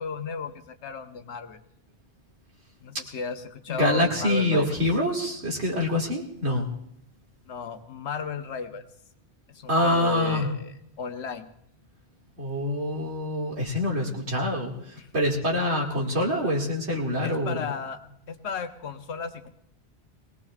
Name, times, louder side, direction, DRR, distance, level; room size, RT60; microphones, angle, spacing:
voice 1, 0.0-1.6 2.8-4.8 7.5-8.8 9.5-11.5 15.0-15.1 17.2-18.0 18.3-19.5, left 5 dB, 85° left, 8 dB, 1.2 m, -34 dB
voice 2, 3.7-6.7 9.7-10.5 12.4-17.7, left 1 dB, 85° right, -2 dB, 2.5 m, -25 dB
22.0 x 18.5 x 2.4 m, 0.73 s
omnidirectional pair, 1.1 m